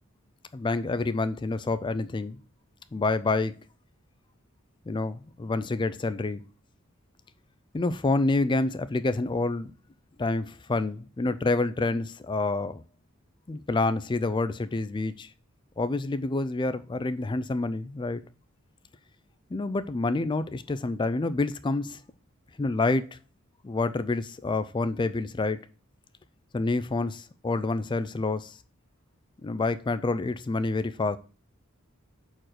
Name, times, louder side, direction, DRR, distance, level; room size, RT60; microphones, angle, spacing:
voice 1, 0.5-2.4 2.9-3.6 4.9-6.4 7.7-9.7 10.2-12.8 13.5-15.3 15.8-18.2 19.5-22.0 22.6-23.2 23.6-25.6 26.5-28.6 29.4-31.2, left 3 dB, 20° left, 0.4 m, -28 dB
5.8 x 4.5 x 6.4 m
head